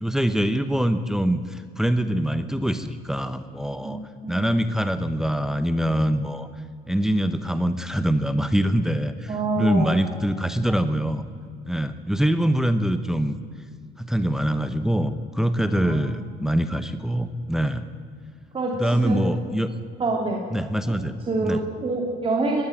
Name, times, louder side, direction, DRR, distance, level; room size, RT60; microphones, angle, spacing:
voice 1, 0.0-4.0 4.3-6.5 6.9-11.2 11.7-13.4 14.0-17.8 18.8-19.7 20.5-21.2 21.4-21.6, right 1 dB, 5° right, 10 dB, 1.0 m, -24 dB
voice 2, 3.8-4.4 9.3-10.0 15.7-16.1 18.5-19.3 20.0-20.4 21.3-22.6, right 2 dB, 30° right, 0 dB, 2.7 m, -26 dB
20.0 x 15.0 x 9.2 m, 2.1 s
cardioid pair, 110°, 17 cm